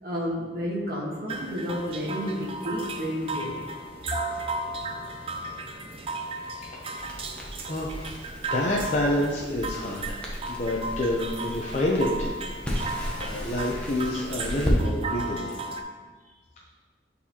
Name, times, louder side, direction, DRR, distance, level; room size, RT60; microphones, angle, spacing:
voice 1, 0.0-3.6, equal, 60° right, -4 dB, 1.4 m, -31 dB
sound 1, 1.3-15.8, right 2 dB, 30° right, 0.4 m, -35 dB
voice 2, 6.4-7.0 7.7-12.3 12.9-15.5, left 1 dB, 40° left, -4 dB, 0.6 m, -29 dB
Crackle, 6.9-14.8, equal, 5° left, 0.8 m, -34 dB
8.5 x 4.1 x 2.8 m, 1.4 s
head